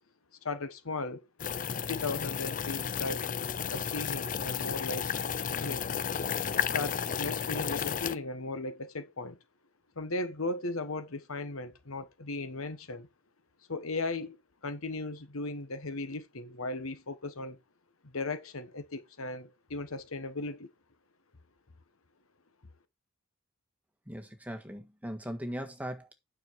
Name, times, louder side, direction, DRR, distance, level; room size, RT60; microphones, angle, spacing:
voice 1, 0.4-1.2 1.9-3.2 3.7-5.1 5.6-5.9 6.7-9.4 10.0-13.1 13.7-14.4 14.6-17.6 18.0-20.7, left 2 dB, 70° left, 1.3 m, -37 dB
sound 1, 1.4-8.2, left 7 dB, 40° left, 0.4 m, -33 dB
voice 2, 24.1-26.1, equal, 5° right, 1.6 m, -39 dB
9.3 x 6.4 x 4.6 m
head